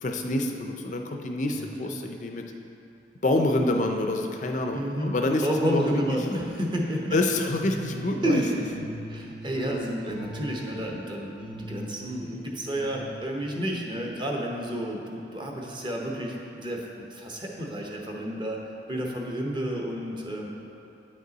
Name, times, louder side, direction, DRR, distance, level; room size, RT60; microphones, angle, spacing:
voice 1, 0.0-2.4 3.2-6.0 7.1-8.4, left 2 dB, 45° left, 3 dB, 0.4 m, -27 dB
voice 2, 1.5-2.0 4.7-5.1 5.4-7.2 8.2-18.6 18.9-20.5, equal, 25° right, -1 dB, 0.8 m, -31 dB
sound 1, 5.1-13.4, equal, 50° right, 1.9 m, -40 dB
9.2 x 5.3 x 4.0 m, 2.6 s
head